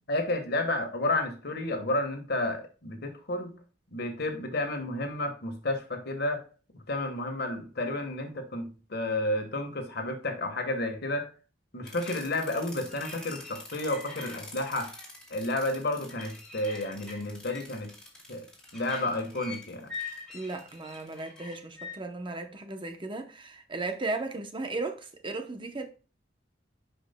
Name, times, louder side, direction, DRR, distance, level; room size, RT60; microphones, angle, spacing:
voice 1, 0.1-3.6 3.9-6.4 6.9-11.3 11.7-14.9 15.3-17.9 18.3-18.5 18.7-19.9, left 2 dB, 60° left, 1.4 m, -31 dB
sound 1, 11.8-21.9, left 3 dB, 5° left, 2.4 m, -44 dB
voice 2, 20.3-25.9, right 3 dB, 25° right, 0.8 m, -36 dB
11.0 x 5.1 x 2.2 m
head